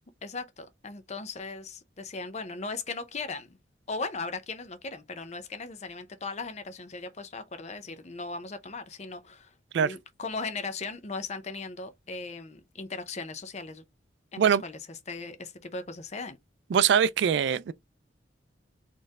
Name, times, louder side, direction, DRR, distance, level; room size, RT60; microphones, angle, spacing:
voice 1, 0.2-3.6 3.9-13.8 14.3-14.8 15.1-16.4, left 3 dB, 35° left, 0.6 m, -38 dB
voice 2, 16.7-17.7, right 7 dB, 70° right, 0.3 m, -22 dB
4.4 x 3.2 x 3.5 m
head